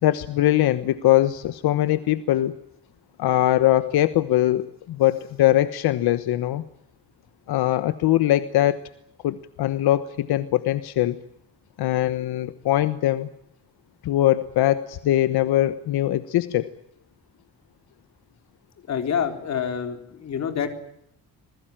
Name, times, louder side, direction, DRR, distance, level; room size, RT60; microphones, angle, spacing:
voice 1, 0.0-2.6 3.2-6.6 7.5-8.8 9.2-11.2 11.8-13.3 14.0-16.7, left 14 dB, 80° left, 12 dB, 1.2 m, -21 dB
voice 2, 18.9-20.7, left 7 dB, 45° left, 6 dB, 3.9 m, -27 dB
27.5 x 20.5 x 8.9 m, 0.76 s
cardioid pair, 175°, 38 cm